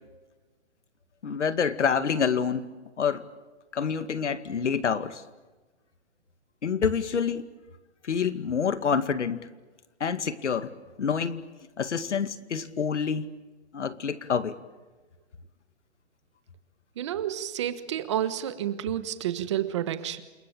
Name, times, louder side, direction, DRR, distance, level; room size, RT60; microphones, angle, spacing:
voice 1, 1.2-2.7 3.0-3.2 3.7-5.2 6.6-7.5 8.0-9.5 10.0-10.7 11.0-11.4 11.8-13.3 13.7-14.6, left 6 dB, 90° left, 12 dB, 2.3 m, -27 dB
voice 2, 17.0-20.2, right 11 dB, 25° right, 12 dB, 1.3 m, -30 dB
28.5 x 22.0 x 8.9 m, 1.2 s
hypercardioid pair, 175°, 34 cm